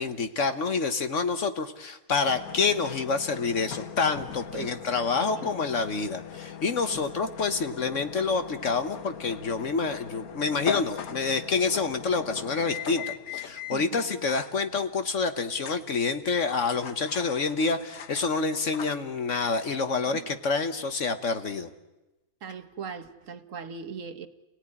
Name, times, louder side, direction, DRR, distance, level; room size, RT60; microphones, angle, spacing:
voice 1, 0.0-21.7, left 4 dB, 60° left, 9 dB, 1.5 m, -28 dB
sound 1, 2.2-21.2, left 8 dB, 85° left, 1.6 m, -41 dB
voice 2, 4.5-5.5 6.9-7.0 13.7-14.3 20.1-20.2 22.4-24.3, right 6 dB, 65° right, 10 dB, 1.6 m, -40 dB
29.5 x 17.5 x 9.9 m, 1.0 s
omnidirectional pair, 1.5 m